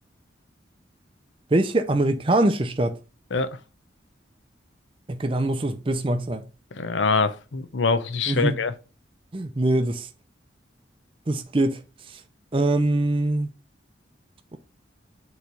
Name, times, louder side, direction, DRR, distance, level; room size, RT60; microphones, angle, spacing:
voice 1, 1.5-2.9 5.1-6.4 8.3-8.5 9.3-10.1 11.3-11.8 12.1-12.2 12.5-13.5, right 2 dB, 30° right, 0.5 m, -23 dB
voice 2, 6.7-8.7, left 4 dB, 80° left, 0.6 m, -24 dB
7.0 x 3.1 x 5.1 m
head